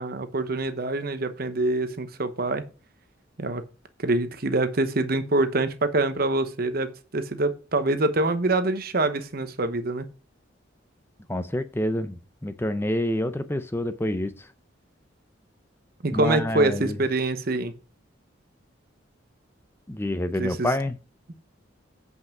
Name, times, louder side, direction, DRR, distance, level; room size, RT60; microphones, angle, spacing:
voice 1, 0.0-2.6 3.4-3.6 4.0-10.1 16.0-17.7 20.4-20.7, right 2 dB, 50° right, 1.0 m, -25 dB
voice 2, 11.3-14.5 16.1-17.0 19.9-21.0, left 1 dB, 10° left, 0.6 m, -27 dB
8.4 x 5.5 x 5.9 m
head